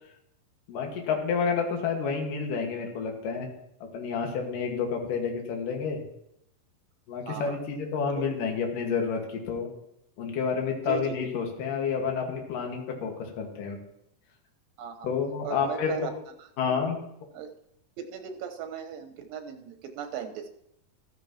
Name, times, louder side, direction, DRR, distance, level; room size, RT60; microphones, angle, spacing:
voice 1, 0.7-3.5 3.9-6.0 7.1-9.7 10.2-13.8 15.0-16.1 16.6-17.0, left 6 dB, 75° left, 2 dB, 3.2 m, -29 dB
voice 2, 7.3-7.6 8.1-8.2 10.9-11.2 14.8-15.1 15.4-16.1 16.7-16.8 17.3-17.5 18.0-20.5, right 8 dB, 85° right, 5 dB, 2.9 m, -37 dB
14.5 x 13.5 x 2.9 m, 0.77 s
omnidirectional pair, 4.0 m